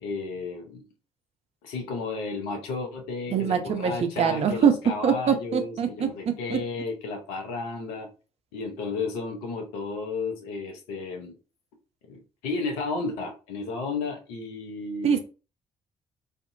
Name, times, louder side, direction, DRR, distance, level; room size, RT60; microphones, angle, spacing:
voice 1, 0.0-0.8 1.6-8.1 8.5-11.3 12.1-15.2, left 3 dB, 70° left, 3 dB, 0.7 m, -33 dB
voice 2, 3.3-4.7 5.0-6.1 6.5-6.6 15.0-15.2, right 7 dB, 50° right, 7 dB, 0.6 m, -23 dB
2.5 x 2.5 x 2.6 m, 0.33 s
figure-of-eight pair, 45°, 14 cm